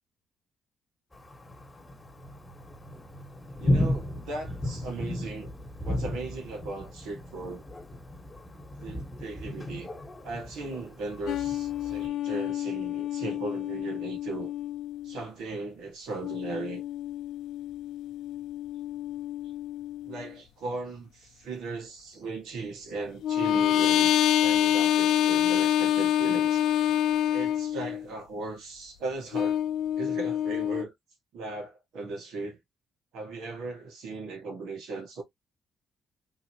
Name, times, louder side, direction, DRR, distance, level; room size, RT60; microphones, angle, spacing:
Thunder, 1.1-12.1, left 1 dB, 20° left, 1.5 m, -34 dB
voice 1, 3.6-5.5 5.8-7.6 8.8-9.9 10.2-14.5 15.0-16.8 19.4-19.5 20.0-26.6 27.3-29.6 30.0-30.9 31.3-32.6 33.1-35.2, right 3 dB, 85° right, 1.7 m, -37 dB
sound 1, 11.3-15.2 16.2-20.3 23.2-28.0 29.3-30.8, left 11 dB, 80° left, 0.4 m, -27 dB
3.7 x 2.8 x 2.9 m
cardioid pair, 90°, 0 cm